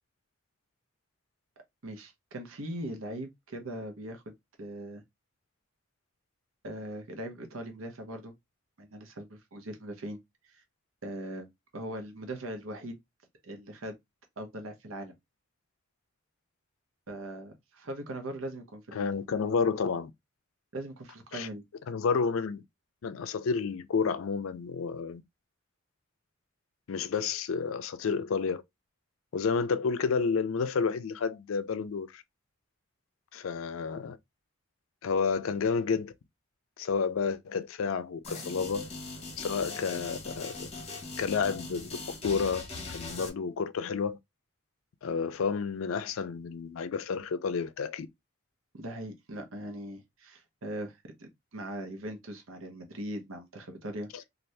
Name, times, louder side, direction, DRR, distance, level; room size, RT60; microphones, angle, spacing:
voice 1, 1.8-5.0 6.6-8.3 8.8-10.2 10.5-10.6 11.0-13.0 13.4-13.9 14.4-15.1 17.1-19.2 20.7-21.6 48.7-54.2, right 1 dB, 90° right, 0.8 m, -40 dB
voice 2, 18.9-20.1 21.3-21.5 21.9-22.6 23.0-25.2 26.9-28.6 29.3-32.2 33.3-34.2 35.0-36.1 36.8-38.9 39.4-40.7 41.2-42.0 42.2-42.6 42.9-44.2 45.0-48.1 54.1-54.2, left 5 dB, 90° left, 0.4 m, -30 dB
sound 1, 38.2-43.3, left 3 dB, 30° left, 0.9 m, -40 dB
2.6 x 2.5 x 3.2 m
head